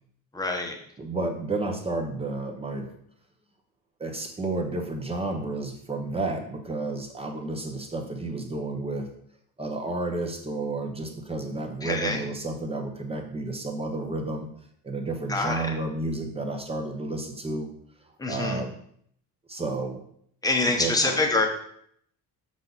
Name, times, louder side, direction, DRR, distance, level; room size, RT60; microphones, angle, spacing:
voice 1, 0.3-0.8 11.8-12.2 15.3-15.7 18.2-18.6 20.4-21.5, left 2 dB, 10° left, 3 dB, 1.0 m, -25 dB
voice 2, 1.0-2.9 4.0-9.1 9.6-14.5 14.8-17.7 18.3-18.7 19.5-20.0 20.8-21.2, right 2 dB, 15° right, 3 dB, 0.8 m, -31 dB
6.7 x 6.2 x 4.0 m, 0.66 s
cardioid pair, 155°, 38 cm